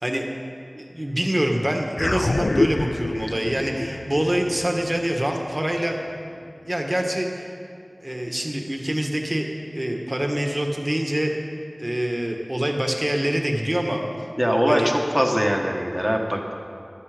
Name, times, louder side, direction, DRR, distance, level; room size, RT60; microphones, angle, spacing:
voice 1, 0.7-6.0 6.6-7.5 8.0-9.5 9.7-11.3 11.8-14.0 14.7-14.9, right 1 dB, 35° right, 2 dB, 1.7 m, -25 dB
sound 1, 2.0-6.6, left 2 dB, 85° left, 0.3 m, -28 dB
voice 2, 14.4-16.5, equal, 10° right, 1 dB, 1.5 m, -22 dB
14.5 x 12.0 x 5.1 m, 2.5 s
wide cardioid pair, 40°, 0 cm